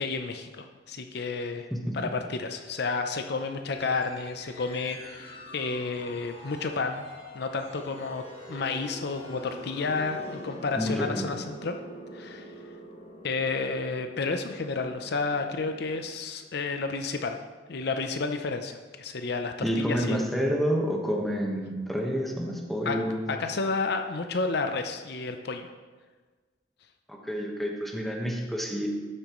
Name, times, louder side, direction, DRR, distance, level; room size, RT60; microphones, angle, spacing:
voice 1, 0.0-1.7 1.9-7.0 7.3-11.8 12.1-12.5 13.2-17.4 17.7-20.3 22.9-23.0 23.3-25.7, left 4 dB, 65° left, 6 dB, 0.6 m, -31 dB
sound 1, 3.7-16.0, left 1 dB, 35° left, 1.7 m, -45 dB
voice 2, 10.7-11.3 19.6-23.3 27.1-28.9, equal, ahead, 0 dB, 1.3 m, -29 dB
12.5 x 8.7 x 3.1 m, 1.4 s
head